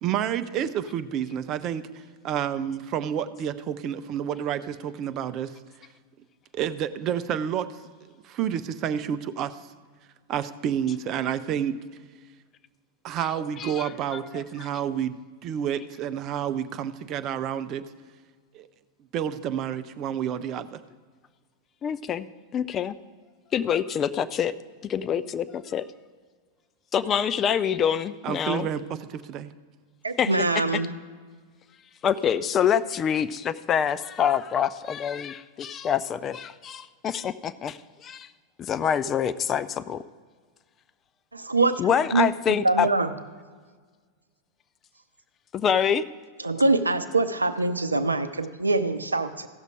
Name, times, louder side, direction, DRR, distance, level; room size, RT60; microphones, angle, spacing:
voice 1, 0.0-1.9 2.2-5.5 6.5-7.7 8.2-9.6 10.3-11.8 13.0-17.8 18.5-18.7 19.1-20.8 28.2-28.8 29.1-29.5, right 9 dB, 35° right, 12 dB, 0.5 m, -29 dB
voice 2, 21.8-22.3 22.5-22.9 23.5-24.5 24.8-25.8 26.9-28.7 30.2-30.4 30.7-30.8 32.0-38.3 38.6-40.0 41.8-42.9 45.5-46.1, left 8 dB, 25° left, 13 dB, 0.4 m, -26 dB
voice 3, 30.0-30.9 41.3-41.8 42.1-43.1 46.4-49.5, right 3 dB, 80° right, 11 dB, 0.5 m, -24 dB
15.5 x 6.5 x 4.9 m, 1.5 s
figure-of-eight pair, 90°, 0 cm